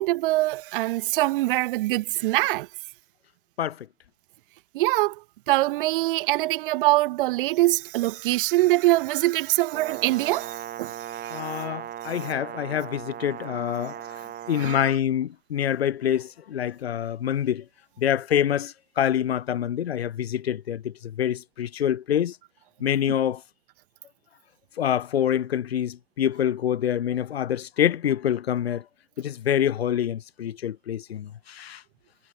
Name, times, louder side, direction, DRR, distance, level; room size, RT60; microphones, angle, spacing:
voice 1, 0.0-2.7 4.7-5.2 5.5-10.9 11.2-11.4 14.6-14.9, right 18 dB, 60° right, 0.9 m, -23 dB
Brass instrument, 9.7-15.0, right 11 dB, 30° right, 2.7 m, -38 dB
voice 2, 11.3-13.9 14.5-17.6 18.0-22.4 22.8-23.4 24.8-28.8 29.2-31.8, left 10 dB, 80° left, 0.8 m, -26 dB
figure-of-eight pair, 90°, 30 cm